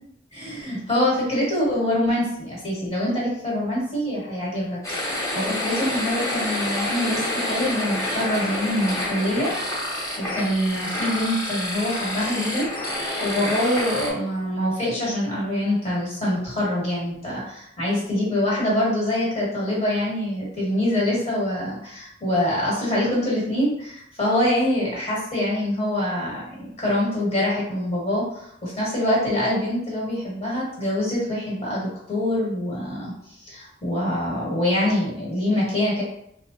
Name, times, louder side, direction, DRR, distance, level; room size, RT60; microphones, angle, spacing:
voice 1, 0.3-5.1 5.3-33.1 33.4-36.0, left 1 dB, 35° left, -5 dB, 1.5 m, -25 dB
sound 1, 4.8-14.1, left 1 dB, 15° left, 0.9 m, -28 dB
3.1 x 2.3 x 3.9 m, 0.72 s
head